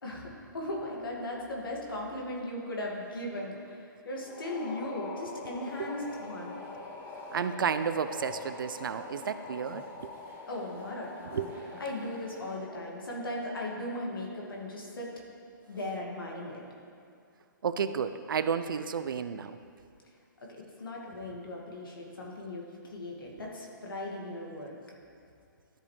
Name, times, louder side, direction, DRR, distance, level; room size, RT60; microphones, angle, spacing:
voice 1, 0.0-6.6 9.2-9.3 10.5-11.5 11.8-15.1 15.7-16.6 20.5-24.8, left 1 dB, 85° left, -2 dB, 2.1 m, -38 dB
sound 1, 4.2-13.9, left 3 dB, 25° left, 0.8 m, -45 dB
sound 2, 5.6-12.6, right 4 dB, 15° right, 0.7 m, -55 dB
voice 2, 7.3-10.1 11.3-11.7 17.6-19.5, right 7 dB, 75° right, 12 dB, 0.5 m, -32 dB
13.0 x 5.2 x 3.2 m, 2.4 s
hypercardioid pair, 140°, 11 cm